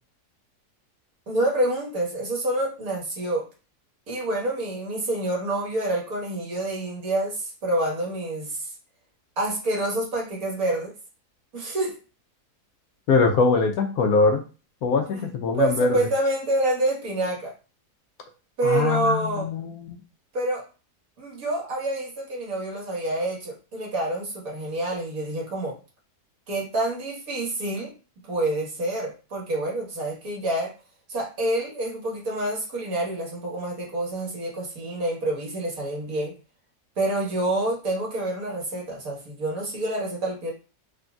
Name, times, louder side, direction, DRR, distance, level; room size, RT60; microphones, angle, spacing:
voice 1, 1.3-3.5 4.1-8.7 9.4-10.9 11.5-12.0 15.1-15.2 15.5-17.5 18.6-19.5 20.3-20.6 21.2-25.7 26.5-27.9 28.3-30.7 31.1-36.3 37.0-40.5, right 1 dB, 65° right, -2 dB, 1.8 m, -27 dB
voice 2, 13.1-14.4 14.8-15.9 18.6-20.0, left 4 dB, 75° left, 4 dB, 1.1 m, -22 dB
3.9 x 3.4 x 2.3 m, 0.33 s
omnidirectional pair, 1.7 m